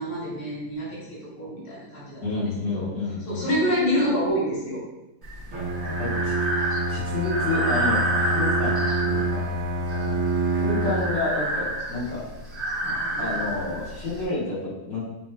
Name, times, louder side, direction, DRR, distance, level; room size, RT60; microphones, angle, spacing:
voice 1, 0.0-2.9 3.3-4.8 12.8-13.4, equal, 90° left, -7 dB, 2.5 m, -28 dB
voice 2, 2.2-3.5 5.5-5.6 6.0-6.3 6.9-9.5 9.9-10.1 10.5-12.2 13.2-15.0, left 3 dB, 60° left, -9 dB, 2.1 m, -29 dB
Breathing, 5.2-14.2, right 1 dB, 30° right, 1.3 m, -29 dB
Bowed string instrument, 5.5-11.2, right 2 dB, 75° right, 0.7 m, -27 dB
7.0 x 2.7 x 2.2 m, 0.98 s
omnidirectional pair, 2.3 m